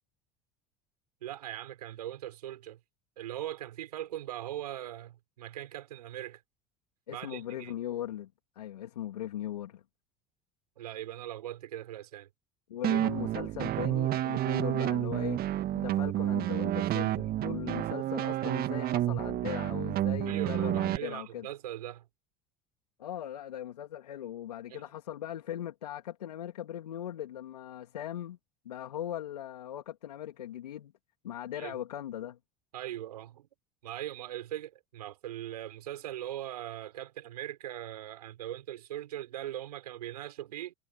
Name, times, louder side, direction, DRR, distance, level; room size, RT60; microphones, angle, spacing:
voice 1, 1.2-2.8 3.2-6.4 7.1-7.7 10.8-12.3 20.3-22.1 24.7-24.8 31.5-31.8 32.7-33.5 33.8-40.7, right 12 dB, 80° right, 5.5 m, -40 dB
voice 2, 7.1-8.3 8.6-9.8 12.7-15.4 15.7-21.5 23.0-28.4 28.6-30.9 31.2-32.4, left 11 dB, 85° left, 2.5 m, -39 dB
sound 1, 12.8-21.0, right 13 dB, 50° right, 1.7 m, -30 dB
hypercardioid pair, 70°, 20 cm